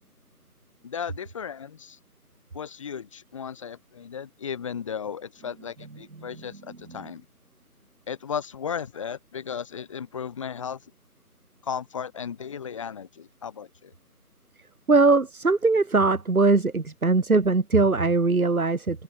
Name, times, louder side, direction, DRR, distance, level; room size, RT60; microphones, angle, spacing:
voice 1, 0.8-2.0 2.5-7.2 8.1-10.8 11.6-13.9, left 7 dB, 20° left, 6.8 m, -35 dB
voice 2, 14.9-19.0, right 3 dB, 65° right, 3.5 m, -21 dB
figure-of-eight pair, 170°, 45 cm